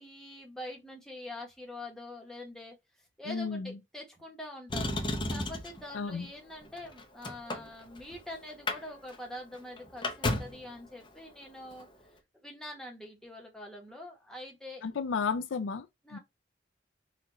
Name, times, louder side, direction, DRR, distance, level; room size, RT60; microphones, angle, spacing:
voice 1, 0.0-5.0 5.3-11.9 12.4-14.8 16.0-16.2, left 1 dB, 5° left, 1.1 m, -45 dB
voice 2, 3.3-3.7 5.9-6.3 14.8-15.9 16.1-16.2, left 5 dB, 75° left, 0.4 m, -32 dB
Motor vehicle (road), 4.7-5.8 6.6-8.2 8.5-8.8 9.1-9.2 9.5-10.7 11.7-11.8, left 2 dB, 25° left, 0.7 m, -33 dB
4.3 x 2.5 x 3.8 m
head